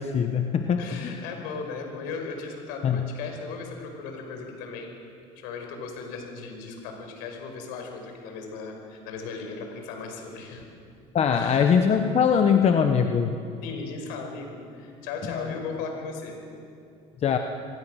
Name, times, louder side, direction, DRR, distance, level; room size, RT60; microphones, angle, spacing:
voice 1, 0.0-1.1 2.8-3.0 11.1-13.3 17.2-17.4, left 7 dB, 40° left, 5 dB, 1.3 m, -22 dB
voice 2, 0.8-4.9 5.4-10.7 11.3-11.7 13.6-16.3, left 4 dB, 75° left, 3 dB, 5.3 m, -37 dB
25.5 x 19.0 x 6.5 m, 2.6 s
supercardioid pair, 90°, 16 cm